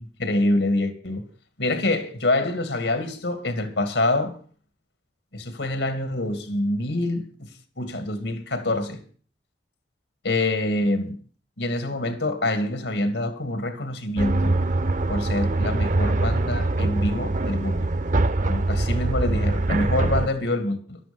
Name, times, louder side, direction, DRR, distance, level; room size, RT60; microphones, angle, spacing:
voice 1, 0.2-1.3 1.6-4.4 5.3-7.5 7.8-9.0 10.2-11.2 11.6-14.5 15.1-17.9 18.5-21.0, left 2 dB, 85° left, 2.5 m, -26 dB
sound 1, 14.2-20.3, right 2 dB, 45° right, 0.8 m, -23 dB
14.5 x 12.5 x 5.5 m
head